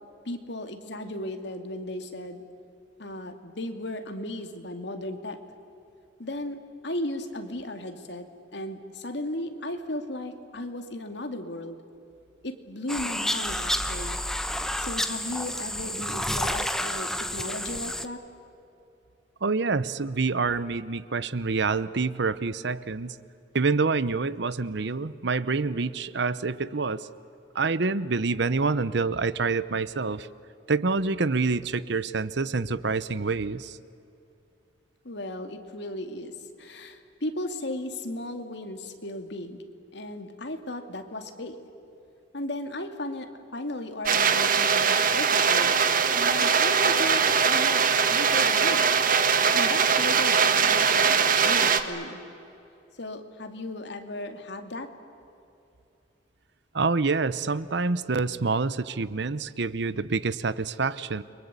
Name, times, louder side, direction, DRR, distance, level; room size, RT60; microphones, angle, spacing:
voice 1, 0.2-2.4 3.0-5.4 6.2-8.3 8.5-11.8 12.4-14.2 14.8-18.2 35.0-39.6 39.9-41.6 42.3-45.8 46.1-49.0 49.5-51.1 51.4-52.2 53.0-54.9, left 1 dB, 65° left, 7 dB, 2.4 m, -35 dB
sound 1, 12.9-18.1, left 1 dB, 5° left, 1.0 m, -30 dB
voice 2, 19.4-23.2 23.5-27.1 27.5-30.3 30.7-33.8 56.7-61.2, right 4 dB, 65° right, 16 dB, 0.8 m, -27 dB
sound 2, 44.1-51.8, right 6 dB, 50° right, 1.5 m, -21 dB
30.0 x 23.5 x 8.3 m, 2.7 s
head